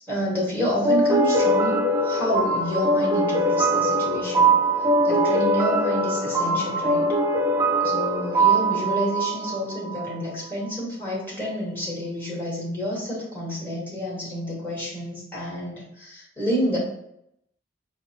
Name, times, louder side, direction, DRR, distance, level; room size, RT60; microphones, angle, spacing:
voice 1, 0.1-4.5 5.0-7.1 7.8-16.8, equal, 10° left, -5 dB, 1.4 m, -29 dB
sound 1, 0.8-10.1, right 1 dB, 15° right, 0.5 m, -22 dB
6.3 x 2.1 x 2.8 m, 0.77 s
head